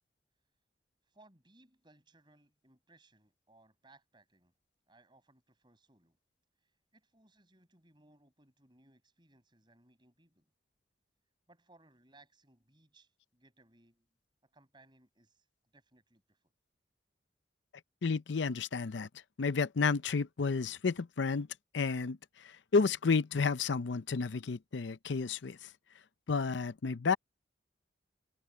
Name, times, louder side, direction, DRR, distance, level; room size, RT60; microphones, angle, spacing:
voice 1, 1.0-4.5 4.9-6.2 6.6-10.5 11.5-14.1 14.4-15.5 15.7-16.5, right 2 dB, 25° right, 6.8 m, -65 dB
voice 2, 18.0-19.1 19.4-21.5 21.7-25.7 26.3-27.2, left 4 dB, 80° left, 0.6 m, -31 dB
head